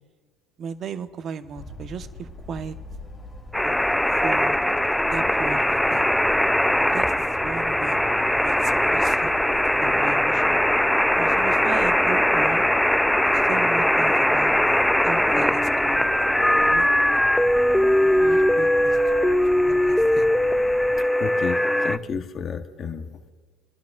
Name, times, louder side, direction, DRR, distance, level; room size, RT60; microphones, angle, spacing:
voice 1, 0.6-2.8 3.6-3.8 4.2-4.6 5.1-6.1 6.8-8.0 8.3-9.4 9.8-10.6 11.2-12.6 13.3-14.5 15.0-16.1 16.5-16.9 18.2-19.0 19.5-20.3, right 6 dB, 45° right, 10 dB, 0.9 m, -36 dB
sound 1, 1.6-21.0, left 2 dB, 25° left, 2.1 m, -41 dB
sound 2, 3.5-22.0, left 1 dB, 5° left, 0.4 m, -20 dB
voice 2, 21.2-23.3, left 6 dB, 40° left, 7 dB, 0.9 m, -32 dB
24.5 x 11.5 x 2.4 m, 1.5 s
supercardioid pair, 90°, 0 cm